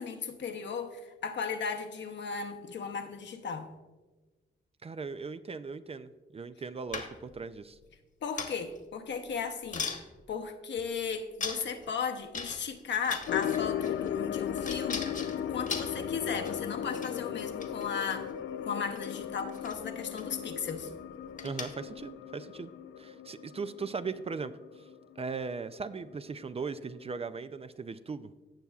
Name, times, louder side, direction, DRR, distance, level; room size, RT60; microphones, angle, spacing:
voice 1, 0.0-3.7 8.2-9.9 10.3-18.3 18.6-20.9, left 6 dB, 65° left, 5 dB, 0.9 m, -36 dB
voice 2, 4.8-7.8 21.4-22.7 23.0-24.9 25.2-28.3, right 4 dB, 30° right, 12 dB, 0.4 m, -38 dB
sound 1, 6.9-7.4 8.4-8.8 9.3-9.4 9.7-10.0 10.8-10.9 11.4-11.9 12.3-12.8 13.0-14.1 14.6-16.7 16.9-17.1 17.5-18.2 19.0-19.2 19.5-19.8 20.2-20.3 20.6-20.9 21.4-21.9, left 4 dB, 45° left, 1.2 m, -39 dB
sound 2, 13.3-25.8 26.1-26.2 26.8-26.9, left 9 dB, 85° left, 0.4 m, -37 dB
16.5 x 6.9 x 2.4 m, 1.2 s
cardioid pair, 95°, 19 cm